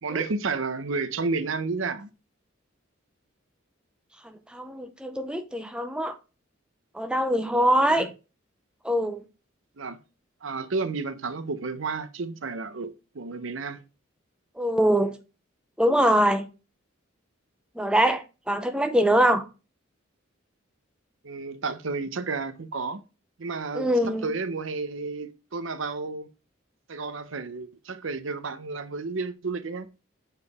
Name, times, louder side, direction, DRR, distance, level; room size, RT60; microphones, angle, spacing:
voice 1, 0.0-2.1 7.9-8.1 9.8-10.0 10.4-13.8 21.2-23.0 23.4-26.3 26.9-29.9, right 4 dB, 75° right, 0.7 m, -31 dB
voice 2, 4.5-6.1 6.9-8.1 8.8-9.2 14.6-15.1 15.8-16.5 17.8-19.4 23.7-24.3, equal, 5° right, 0.6 m, -23 dB
6.8 x 4.6 x 3.5 m
head